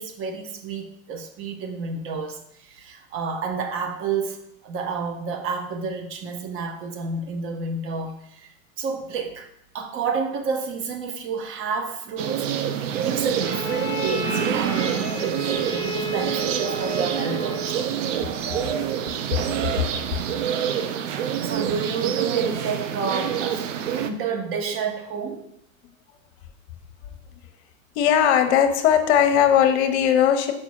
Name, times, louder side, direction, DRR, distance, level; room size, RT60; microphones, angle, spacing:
voice 1, 0.0-9.5 9.7-17.9 21.4-25.5, right 5 dB, 30° right, 6 dB, 0.9 m, -30 dB
sound 1, 12.2-24.1, right 9 dB, 65° right, 0.7 m, -27 dB
Bowed string instrument, 13.4-18.0, right 1 dB, 10° left, 1.3 m, -32 dB
voice 2, 27.9-30.5, left 9 dB, 55° left, 7 dB, 0.9 m, -18 dB
5.3 x 4.0 x 4.7 m, 0.74 s
hypercardioid pair, 105°, 41 cm